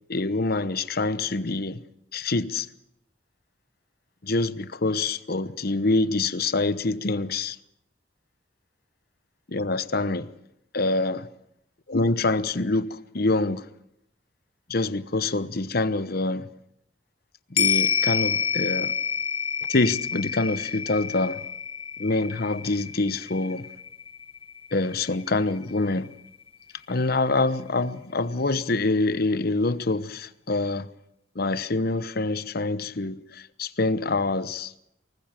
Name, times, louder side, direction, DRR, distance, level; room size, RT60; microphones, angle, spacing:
voice 1, 0.1-1.8 2.1-2.7 4.2-7.6 9.5-10.3 10.7-11.3 11.9-13.6 14.7-16.5 17.5-18.9 19.7-21.4 22.0-23.7 24.7-26.1 26.9-30.9 31.3-34.7, left 2 dB, 55° left, 1.0 m, -25 dB
sound 1, 17.6-26.1 26.5-26.6, left 7 dB, 30° left, 0.9 m, -29 dB
24.5 x 20.0 x 7.6 m
head